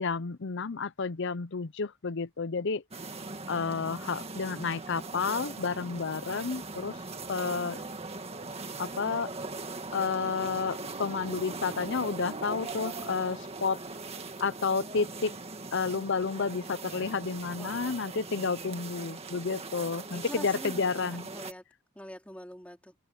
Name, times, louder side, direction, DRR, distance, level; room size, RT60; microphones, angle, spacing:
voice 1, 0.0-2.8 3.5-7.0 7.3-7.8 8.8-9.3 9.9-13.8 14.4-15.4 15.7-21.2, left 5 dB, 55° left, 0.6 m, -31 dB
sound 1, 2.9-21.5, right 3 dB, 30° right, 2.0 m, -40 dB
voice 2, 7.3-7.9 16.5-16.6 17.6-18.2 20.1-21.6 21.9-22.9, equal, 5° left, 3.5 m, -46 dB
head